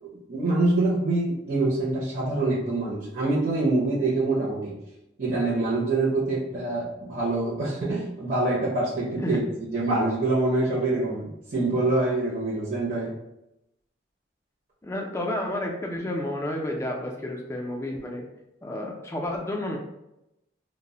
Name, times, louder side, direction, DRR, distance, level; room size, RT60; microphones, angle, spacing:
voice 1, 0.0-4.7 5.2-9.4 9.7-13.1, right 2 dB, 45° right, -7 dB, 0.5 m, -25 dB
voice 2, 14.8-18.3 18.6-19.8, left 1 dB, 15° left, 0 dB, 0.3 m, -30 dB
2.0 x 2.0 x 3.6 m, 0.88 s
head